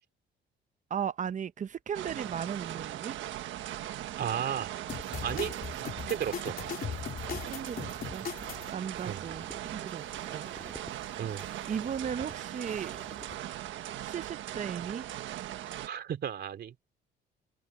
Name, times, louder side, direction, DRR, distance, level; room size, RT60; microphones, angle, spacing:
voice 1, 0.9-3.2 7.5-8.3 8.7-10.0 10.3-10.4 11.7-13.0 14.1-15.1 15.5-15.8, right 8 dB, 40° right, 0.9 m, -36 dB
sound 1, 1.9-15.9, right 13 dB, 80° right, 1.5 m, -39 dB
voice 2, 4.2-4.8 5.2-5.6 6.1-6.6 9.1-9.2 11.2-11.4 15.8-16.7, right 9 dB, 55° right, 2.8 m, -33 dB
sound 2, 4.9-8.7, left 7 dB, 50° left, 3.4 m, -39 dB
sound 3, 8.3-13.4, left 1 dB, 5° left, 2.9 m, -52 dB
cardioid pair, 100°, 20 cm